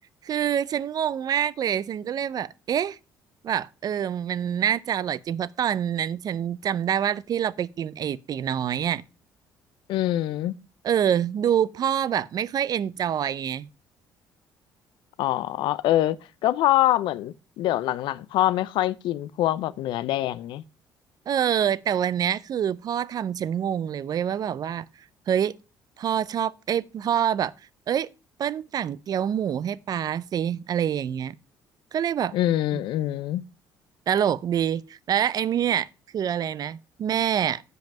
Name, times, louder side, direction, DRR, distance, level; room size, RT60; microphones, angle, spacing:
voice 1, 0.2-3.0 3.4-9.0 10.8-13.7 21.3-24.9 25.3-25.6 26.0-27.5 27.9-28.1 28.4-31.4 31.9-32.3 34.1-35.9 36.1-37.6, right 9 dB, 50° right, 0.5 m, -26 dB
voice 2, 9.9-10.5 15.2-20.6 32.3-33.4, left 14 dB, 75° left, 0.4 m, -24 dB
7.7 x 5.3 x 5.8 m
supercardioid pair, 80°, 8 cm